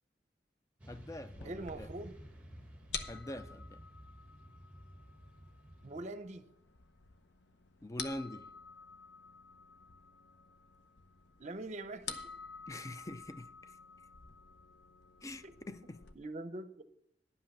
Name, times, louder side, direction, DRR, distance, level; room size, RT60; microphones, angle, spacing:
Motorcycle / Traffic noise roadway noise, 0.8-6.1, equal, 10° right, 1.2 m, -53 dB
voice 1, 0.9-1.9 3.1-3.8 7.8-8.5 12.7-13.8 15.2-16.0, left 1 dB, 20° left, 0.4 m, -44 dB
sound 1, 1.4-16.1, left 5 dB, 90° left, 0.8 m, -50 dB
voice 2, 1.4-2.1 5.8-6.4 11.4-12.3 15.4-15.5 16.2-16.8, right 2 dB, 40° right, 0.7 m, -43 dB
11.0 x 5.6 x 7.1 m
head